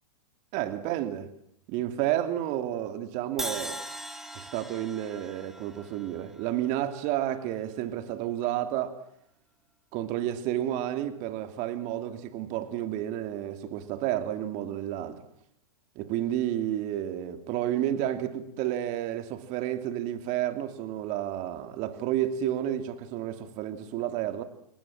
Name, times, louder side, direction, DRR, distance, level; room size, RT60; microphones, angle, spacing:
voice 1, 0.5-1.3 1.7-3.8 4.3-9.0 9.9-15.2 15.9-24.4, right 12 dB, 40° right, 2.8 m, -31 dB
Crash cymbal, 3.4-7.4, equal, ahead, 2.4 m, -40 dB
28.0 x 21.5 x 7.4 m
hypercardioid pair, 115°, 19 cm